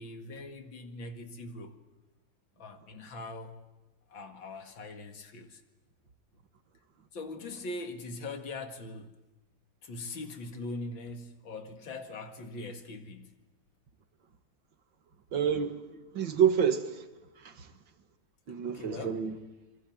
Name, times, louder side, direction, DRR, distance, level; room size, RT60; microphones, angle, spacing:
voice 1, 0.0-1.8 2.6-3.6 4.1-5.6 7.1-9.2 9.8-13.3 18.7-19.2, left 2 dB, 85° left, 2.8 m, -41 dB
voice 2, 15.3-15.8 16.1-17.0 17.4-17.7 18.5-19.3, right 8 dB, 80° right, 2.5 m, -28 dB
27.5 x 22.0 x 9.3 m
omnidirectional pair, 2.0 m